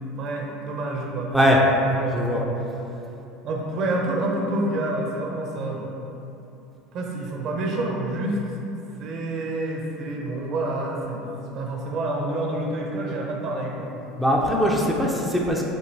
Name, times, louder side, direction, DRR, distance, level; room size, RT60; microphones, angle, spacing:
voice 1, 0.0-1.3 1.8-2.5 3.4-5.9 6.9-8.4 9.0-11.2 11.5-13.9, right 2 dB, 50° right, -1 dB, 0.5 m, -28 dB
voice 2, 14.2-15.6, equal, ahead, -3 dB, 0.4 m, -21 dB
4.3 x 2.6 x 2.6 m, 2.8 s
supercardioid pair, 105°, 0 cm